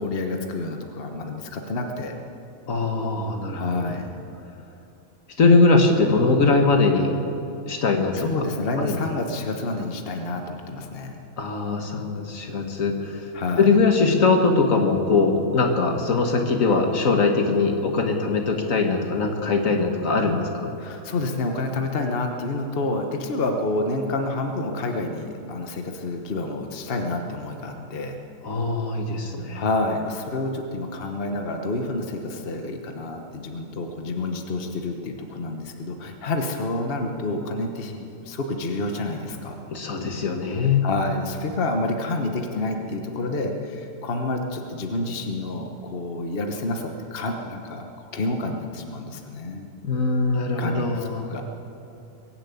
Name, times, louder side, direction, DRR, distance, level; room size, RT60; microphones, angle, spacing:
voice 1, 0.0-2.1 3.5-4.1 8.1-11.2 13.3-13.8 20.8-28.2 29.5-39.6 40.8-47.8 48.1-49.7 50.6-51.4, left 2 dB, 45° left, 4 dB, 1.3 m, -28 dB
voice 2, 2.7-3.6 3.9-4.0 5.4-7.1 7.7-8.3 8.8-9.0 11.4-13.3 13.6-20.7 28.4-29.6 39.7-40.9 49.8-51.3, left 3 dB, 75° left, 3 dB, 1.9 m, -21 dB
22.0 x 7.6 x 8.4 m, 2.7 s
omnidirectional pair, 1.4 m